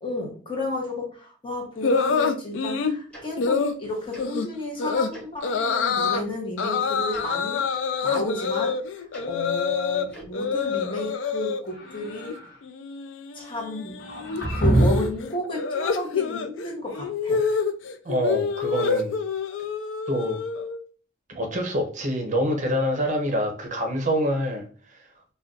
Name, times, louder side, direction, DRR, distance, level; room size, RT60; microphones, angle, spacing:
voice 1, 0.0-12.4 13.3-14.0 14.5-17.4, left 1 dB, 30° left, 0 dB, 0.8 m, -32 dB
sound 1, 1.8-3.0 3.4-3.8 4.2-4.5 4.8-5.1 5.4-6.2 6.6-10.1 10.3-11.6 11.9-12.4 12.6-20.8, left 5 dB, 85° left, 0.3 m, -27 dB
Tick-tock, 3.1-3.2 4.1-4.2 5.1-5.2 6.1-6.2 7.1-7.2 8.1-8.2 9.1-9.2 10.1-10.3, right 1 dB, 5° left, 1.2 m, -41 dB
sound 2, 11.7-12.6 14.0-15.2, right 1 dB, 60° left, 1.0 m, -24 dB
voice 2, 18.0-19.2 20.1-20.4 21.3-25.1, equal, 40° right, 3 dB, 0.6 m, -26 dB
2.5 x 2.2 x 3.7 m, 0.41 s
head